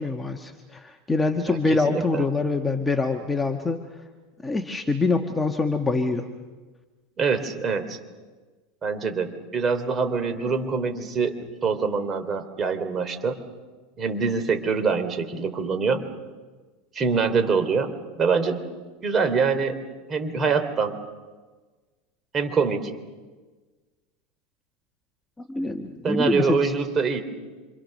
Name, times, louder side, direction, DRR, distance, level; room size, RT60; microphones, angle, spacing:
voice 1, 0.0-3.8 4.4-6.3 25.4-26.7, left 3 dB, 10° left, 4 dB, 1.4 m, -25 dB
voice 2, 1.5-2.3 7.2-8.0 8.8-13.4 14.0-16.1 16.9-18.6 19.0-19.8 20.1-21.0 22.3-22.9 26.0-27.2, right 5 dB, 25° right, 7 dB, 3.1 m, -25 dB
27.5 x 26.5 x 6.5 m, 1.3 s
supercardioid pair, 140°, 0 cm